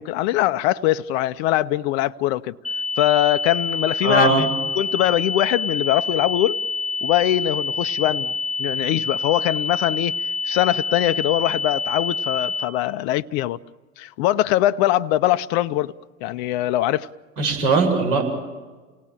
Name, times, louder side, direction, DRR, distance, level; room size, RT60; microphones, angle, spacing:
voice 1, 0.0-2.5 3.0-4.5 4.8-6.6 7.0-10.2 10.4-13.6 14.0-15.9 16.2-17.1, left 14 dB, 45° left, 0.7 m, -22 dB
sound 1, 2.6-12.6, left 4 dB, ahead, 1.7 m, -27 dB
voice 2, 4.0-4.5 17.4-18.2, right 3 dB, 50° right, 7.9 m, -19 dB
29.5 x 18.0 x 7.4 m
hypercardioid pair, 90°, 43 cm